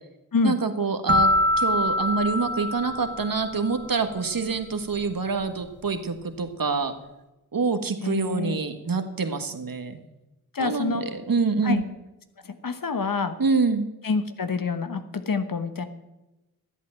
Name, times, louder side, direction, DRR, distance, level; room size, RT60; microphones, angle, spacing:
voice 1, 0.4-1.3 1.6-6.9 7.5-10.0 10.6-11.8 13.4-13.8, right 4 dB, 65° right, 8 dB, 1.6 m, -26 dB
sound 1, 1.1-3.8, left 1 dB, 30° right, 1.5 m, -24 dB
voice 2, 8.0-8.6 10.5-11.0 11.6-11.8 12.4-13.4 14.0-15.8, left 4 dB, 60° left, 10 dB, 1.2 m, -27 dB
13.5 x 8.3 x 7.4 m, 1.0 s
cardioid pair, 40°, 37 cm